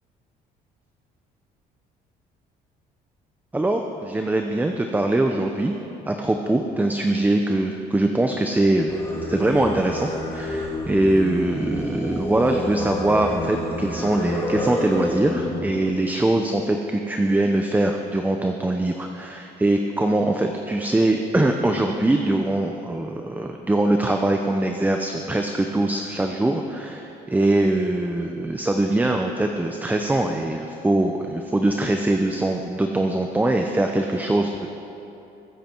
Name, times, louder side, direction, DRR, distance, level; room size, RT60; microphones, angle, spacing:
voice 1, 3.5-5.7 6.1-9.0 9.3-34.7, right 1 dB, 10° right, 4 dB, 0.7 m, -22 dB
Singing, 8.9-15.6, left 1 dB, 15° left, 2.9 m, -29 dB
22.5 x 8.0 x 4.6 m, 2.9 s
cardioid pair, 110°, 17 cm